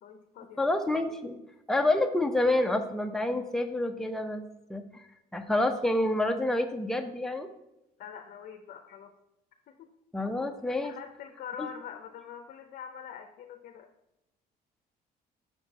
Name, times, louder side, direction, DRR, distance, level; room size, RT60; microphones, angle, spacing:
voice 1, 0.0-0.7 8.0-9.1 9.7-9.9 10.8-13.9, left 8 dB, 60° left, 5 dB, 0.7 m, -44 dB
voice 2, 0.6-1.4 1.7-4.4 4.7-5.0 5.3-7.5 10.1-10.9 11.6-11.7, left 1 dB, 5° left, 5 dB, 0.6 m, -28 dB
6.2 x 4.4 x 5.3 m, 0.89 s
cardioid pair, 110°, 17 cm